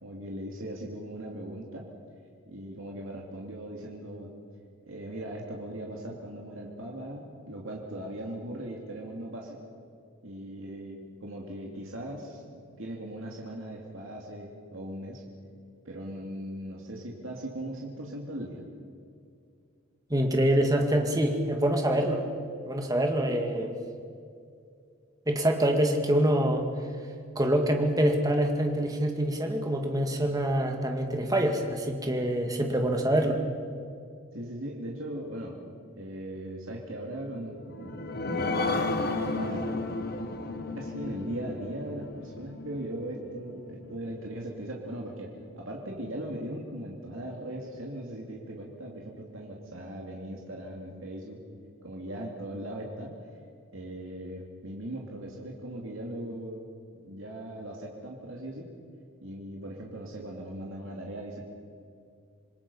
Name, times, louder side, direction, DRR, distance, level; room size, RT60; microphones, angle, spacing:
voice 1, 0.0-1.9 2.5-4.3 4.8-9.6 10.2-15.2 15.8-18.6 34.3-35.6 36.0-39.9 40.8-45.3 45.6-51.4 51.8-53.1 53.7-56.6 57.0-58.7 59.2-61.4, right 1 dB, 65° right, -1 dB, 2.6 m, -39 dB
voice 2, 20.1-22.2 22.7-23.7 25.3-26.7 27.4-33.4, right 1 dB, 15° right, 3 dB, 1.9 m, -25 dB
sound 1, 37.6-44.6 45.1-45.2 45.5-45.6, left 2 dB, 45° left, 1.2 m, -33 dB
27.0 x 21.0 x 5.6 m, 2.4 s
head